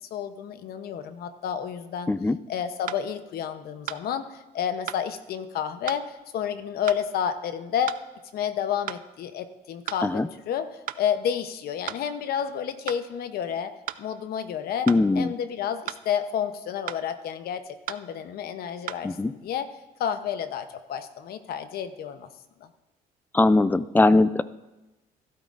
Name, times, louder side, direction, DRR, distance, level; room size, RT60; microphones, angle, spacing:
voice 1, 0.1-2.1 2.5-8.0 8.3-13.7 14.0-14.9 15.2-19.7 20.0-22.3 22.6-22.7, left 8 dB, 65° left, 10 dB, 0.8 m, -30 dB
sound 1, 2.0-2.1 2.9-3.0 3.9-4.0 4.9-5.0 5.9-6.0 6.9-7.0 7.9-8.0 8.9-9.0 9.9-10.0 10.9-11.0 11.9-12.0 12.9-13.0 13.9-14.0 14.9-15.0 15.9-16.0 16.9-17.0 17.9-18.0 18.9-19.0, right 12 dB, 55° right, 0.5 m, -35 dB
voice 2, 14.9-15.3 19.0-19.3 23.3-24.4, left 2 dB, 10° left, 16 dB, 0.3 m, -20 dB
14.5 x 12.5 x 2.5 m, 1.0 s
cardioid pair, 110°, 17 cm